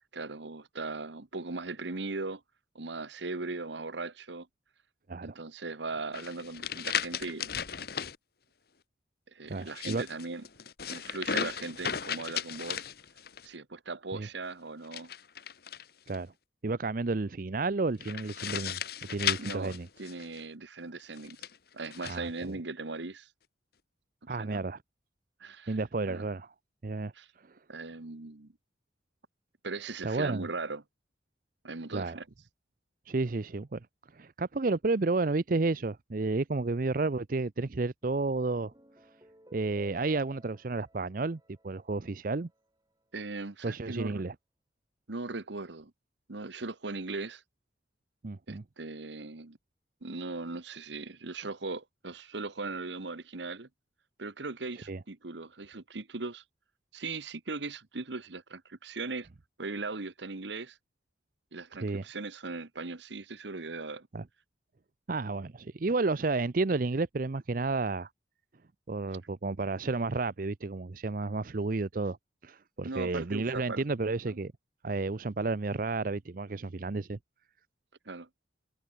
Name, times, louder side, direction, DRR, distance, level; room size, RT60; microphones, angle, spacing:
voice 1, 0.1-2.4 2.7-4.5 5.2-7.5 9.3-10.5 10.9-12.9 13.4-15.1 19.4-21.4 21.7-23.3 24.4-24.6 25.4-25.8 26.1-26.3 27.1-27.3 27.7-28.5 29.6-30.8 31.6-32.2 43.1-44.3 45.1-45.9 46.3-47.4 48.5-49.6 50.0-53.7 54.2-56.4 56.9-59.3 59.6-60.8 61.5-64.1 72.8-73.8 74.3-74.4 78.0-78.3, right 3 dB, 70° right, 1.2 m, -39 dB
sound 1, 6.1-8.2 9.6-13.5 14.8-16.2 18.0-20.4 21.2-22.2, left 8 dB, 55° left, 1.2 m, -36 dB
voice 2, 9.5-10.0 14.1-14.3 16.1-16.3 16.6-18.8 19.1-19.9 22.1-22.5 24.3-24.8 25.7-26.5 26.8-27.1 30.0-30.4 31.9-32.2 33.1-33.8 34.1-38.7 39.5-42.5 43.6-44.3 48.2-48.6 54.9-55.0 61.8-62.0 64.1-64.2 65.1-68.1 68.9-72.2 72.4-74.5 74.8-77.2, right 3 dB, 45° right, 0.6 m, -31 dB
sound 2, 38.0-42.6, right 1 dB, 20° right, 5.4 m, -57 dB
head